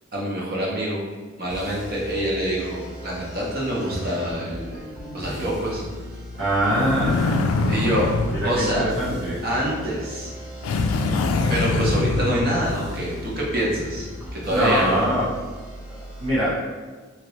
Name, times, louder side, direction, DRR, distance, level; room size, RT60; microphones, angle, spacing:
voice 1, 0.1-1.0 1.4-4.8 5.1-5.8 7.7-8.1 8.4-8.9 9.4-10.3 11.5-15.0, equal, 50° right, -4 dB, 0.8 m, -26 dB
sound 1, 1.5-16.3, equal, 5° right, 0.6 m, -38 dB
voice 2, 6.4-7.4 8.3-9.4 14.5-15.3 16.2-16.5, equal, 90° right, -8 dB, 1.3 m, -23 dB
sound 2, 6.6-9.7 10.6-13.3, left 3 dB, 85° left, 0.3 m, -25 dB
2.9 x 2.8 x 3.1 m, 1.4 s
head